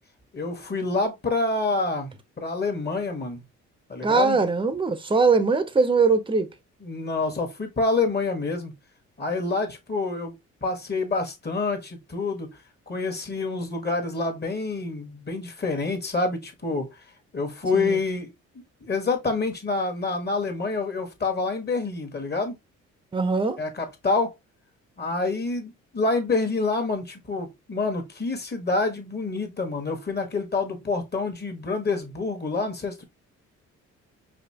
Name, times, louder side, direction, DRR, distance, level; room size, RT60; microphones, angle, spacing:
voice 1, 0.3-2.1 2.4-3.4 3.9-4.4 6.8-8.7 9.2-10.3 10.6-12.5 12.9-16.9 17.3-18.3 18.8-22.5 23.6-24.3 25.0-33.0, left 3 dB, 35° left, 1.5 m, -27 dB
voice 2, 4.0-6.5 17.7-18.0 23.1-23.6, right 4 dB, 15° right, 0.7 m, -21 dB
5.0 x 2.8 x 2.8 m
cardioid pair, 90°, 30 cm